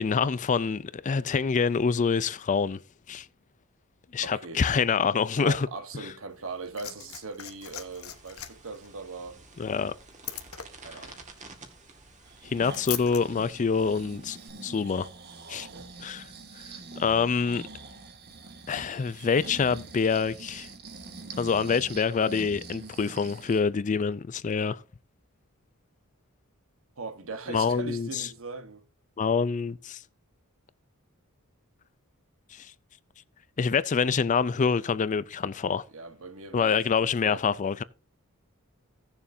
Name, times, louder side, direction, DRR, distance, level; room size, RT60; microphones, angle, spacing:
voice 1, 0.0-2.8 3.1-3.3 4.1-5.7 9.6-9.9 12.4-14.4 14.6-15.1 15.5-15.7 16.0-16.2 17.0-17.7 18.7-20.7 21.4-24.8 27.5-28.3 29.2-30.0 32.5-32.7 33.6-35.8 36.5-37.8, left 5 dB, 35° left, 0.4 m, -26 dB
voice 2, 4.2-4.6 5.4-9.4 10.7-11.2 15.5-15.9 27.0-28.8 35.9-37.4, right 4 dB, 65° right, 1.3 m, -40 dB
Liquid, 6.3-13.2 14.3-14.4, left 12 dB, 75° left, 1.1 m, -41 dB
sound 1, 7.6-14.5, right 3 dB, 35° right, 1.8 m, -51 dB
Breathing, 12.3-23.7 24.1-24.2, right 3 dB, 50° right, 1.4 m, -45 dB
17.0 x 7.0 x 2.7 m
head